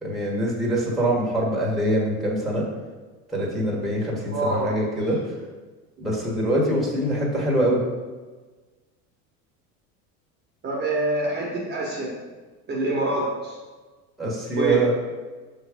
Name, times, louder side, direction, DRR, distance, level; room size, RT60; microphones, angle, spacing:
voice 1, 0.0-2.7 3.3-5.2 6.0-7.8 14.2-15.0, right 1 dB, ahead, -4 dB, 1.5 m, -24 dB
voice 2, 4.3-4.7 10.6-12.1 12.7-13.6 14.5-14.8, right 2 dB, 25° right, -3 dB, 1.2 m, -25 dB
5.9 x 3.3 x 5.0 m, 1.3 s
supercardioid pair, 125°, 39 cm